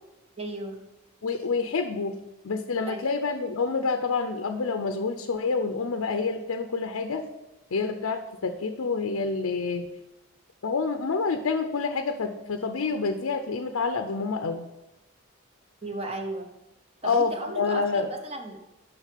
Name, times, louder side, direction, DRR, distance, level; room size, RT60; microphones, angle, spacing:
voice 1, 0.4-0.8 2.8-3.0 15.8-16.5 17.0-18.8, right 2 dB, 25° right, 4 dB, 0.9 m, -35 dB
voice 2, 1.2-2.2 2.4-7.2 7.7-9.9 10.6-14.7 17.0-18.1, left 4 dB, 75° left, 6 dB, 0.6 m, -28 dB
6.4 x 5.8 x 6.6 m, 0.99 s
head